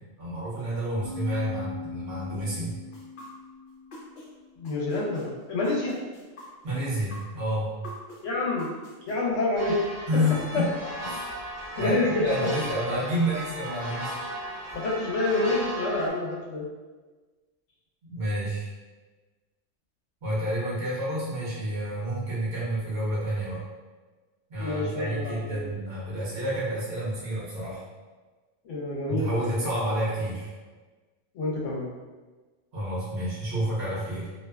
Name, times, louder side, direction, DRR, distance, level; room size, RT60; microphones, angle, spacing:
voice 1, 0.2-2.7 6.6-7.7 10.1-10.7 11.0-11.3 11.7-14.2 18.0-18.7 20.2-23.6 24.5-27.8 29.1-30.5 32.7-34.3, equal, 60° right, -8 dB, 1.2 m, -29 dB
sound 1, 1.0-4.6, left 4 dB, 15° left, 0.8 m, -40 dB
sound 2, 2.9-4.3 4.6-9.1, left 1 dB, 55° left, 0.7 m, -45 dB
voice 2, 4.6-6.0 8.2-8.7 9.1-10.0 10.5-10.6 11.8-12.5 14.7-16.7 24.6-25.7 28.6-29.3 31.3-31.9, left 2 dB, 80° left, -3 dB, 0.9 m, -27 dB
sound 3, 9.6-16.1, right 1 dB, 45° right, 0.6 m, -36 dB
2.7 x 2.1 x 2.2 m, 1.3 s
omnidirectional pair, 1.3 m